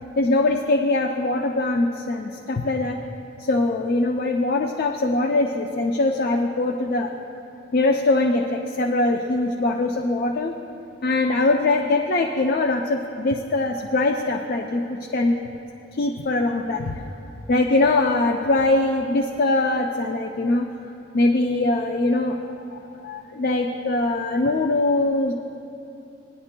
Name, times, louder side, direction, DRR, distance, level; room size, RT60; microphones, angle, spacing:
voice 1, 0.2-3.0 3.4-7.1 7.7-10.5 11.0-15.4 16.0-16.9 17.5-20.7 21.1-25.3, left 2 dB, 50° left, 2 dB, 0.4 m, -22 dB
18.5 x 10.5 x 2.2 m, 2.8 s
head